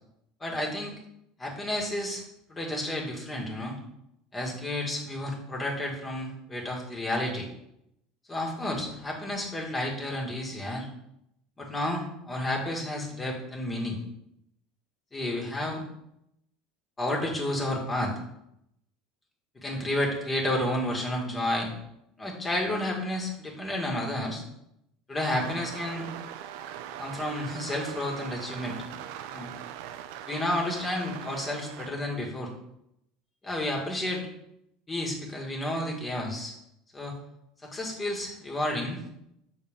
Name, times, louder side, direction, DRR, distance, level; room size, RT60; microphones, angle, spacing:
voice 1, 0.4-0.9 1.4-2.2 2.5-3.8 4.3-7.5 8.3-10.9 11.6-14.0 15.1-15.8 17.0-18.1 19.6-21.7 22.2-24.4 25.1-26.1 27.0-28.8 29.3-29.5 30.3-32.5 33.4-34.2 34.9-36.5 36.9-37.1 37.6-39.1, left 1 dB, 20° left, 0 dB, 1.9 m, -31 dB
sound 1, 25.2-31.9, right 10 dB, 75° right, 0.4 m, -41 dB
7.3 x 4.1 x 3.6 m, 0.79 s
hypercardioid pair, 90°, 0 cm